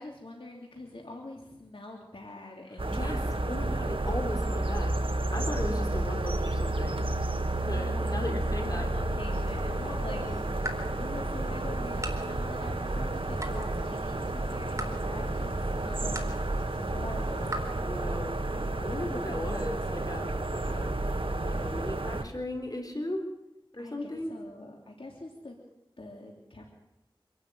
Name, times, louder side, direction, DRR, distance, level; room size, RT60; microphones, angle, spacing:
voice 1, 0.0-3.3 7.6-10.5 10.9-17.5 23.8-25.6 26.0-26.6, left 2 dB, 75° left, -1 dB, 3.3 m, -45 dB
sound 1, 2.8-22.2, right 2 dB, 75° right, 1.6 m, -31 dB
voice 2, 2.9-3.2 3.5-4.9 5.3-7.0 7.6-8.9 9.8-10.4 17.8-18.4 18.8-21.0 21.4-23.2 23.7-24.3, left 1 dB, 45° left, 2 dB, 3.8 m, -37 dB
sound 2, 9.4-17.6, right 1 dB, 35° right, 3.9 m, -43 dB
26.0 x 12.5 x 9.2 m, 0.90 s
wide cardioid pair, 40°, 9 cm